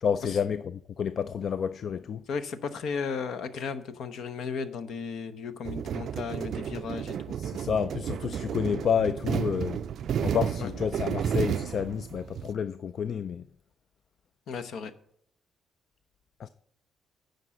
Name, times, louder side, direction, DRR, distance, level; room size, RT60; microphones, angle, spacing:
voice 1, 0.0-2.2 7.4-9.8 10.2-13.5 16.4-16.5, left 7 dB, 55° left, 0.3 m, -30 dB
voice 2, 2.3-7.4 10.6-10.7 14.5-14.9, left 5 dB, 70° left, 0.8 m, -35 dB
sound 1, 5.6-12.5, right 8 dB, 65° right, 0.3 m, -32 dB
9.8 x 5.3 x 6.2 m
cardioid pair, 90°, 0 cm